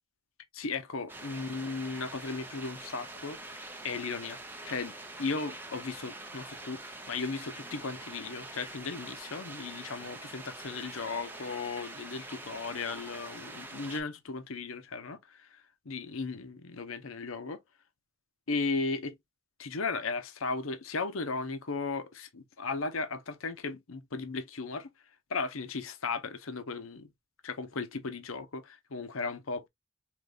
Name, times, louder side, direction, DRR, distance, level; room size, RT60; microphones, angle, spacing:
voice 1, 0.5-4.4 4.6-17.6 18.5-19.2 19.6-24.9 25.3-27.1 27.4-29.7, left 4 dB, 85° left, 0.8 m, -36 dB
sound 1, 1.1-14.0, right 2 dB, 10° right, 0.6 m, -45 dB
5.0 x 3.2 x 2.4 m
head